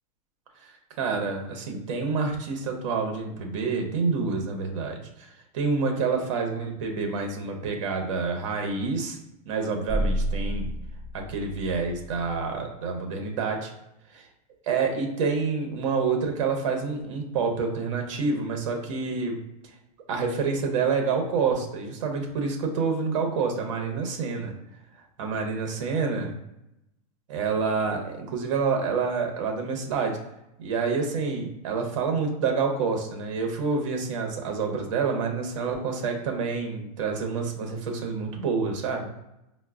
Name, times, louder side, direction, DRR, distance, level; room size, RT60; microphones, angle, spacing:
voice 1, 1.0-5.3 5.5-9.2 9.5-10.7 11.1-13.7 14.1-14.2 14.7-19.4 20.1-24.5 25.2-26.3 27.3-30.2 30.6-39.1, right 4 dB, 55° right, 3 dB, 0.8 m, -28 dB
sound 1, 9.9-12.3, right 1 dB, 20° right, 0.8 m, -30 dB
4.3 x 2.0 x 2.4 m, 0.88 s
supercardioid pair, 175°, 20 cm